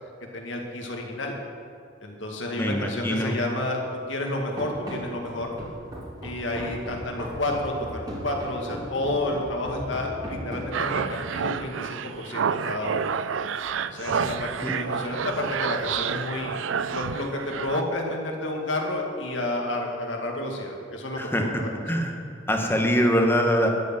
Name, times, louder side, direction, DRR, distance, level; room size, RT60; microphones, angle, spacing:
voice 1, 0.3-1.3 2.0-3.8 4.1-5.5 6.2-13.1 13.9-16.6 16.9-21.7, left 1 dB, 70° left, 1 dB, 2.1 m, -30 dB
voice 2, 2.6-3.3 14.6-14.7 21.2-22.2 22.5-23.7, equal, 10° left, 2 dB, 1.4 m, -23 dB
Run, 4.6-11.2, equal, 20° right, 2.5 m, -37 dB
sound 1, 10.7-17.8, right 6 dB, 75° right, 0.4 m, -29 dB
13.5 x 6.6 x 9.1 m, 2.4 s
head